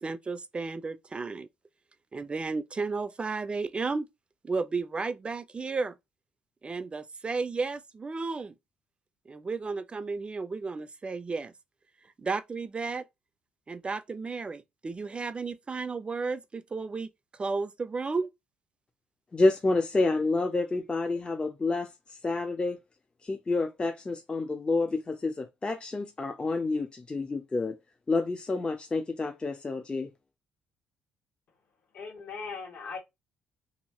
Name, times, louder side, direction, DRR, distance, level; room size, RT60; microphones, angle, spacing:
voice 1, 0.0-1.5 2.1-4.1 4.4-6.0 6.6-8.5 9.3-11.5 12.0-13.1 13.7-18.3, right 4 dB, 30° right, 0.4 m, -33 dB
voice 2, 19.3-22.8 23.2-27.8 28.1-30.1, left 3 dB, 25° left, 0.5 m, -29 dB
voice 3, 31.9-33.0, left 5 dB, 60° left, 1.7 m, -39 dB
2.7 x 2.5 x 2.9 m
supercardioid pair, 70°, 4 cm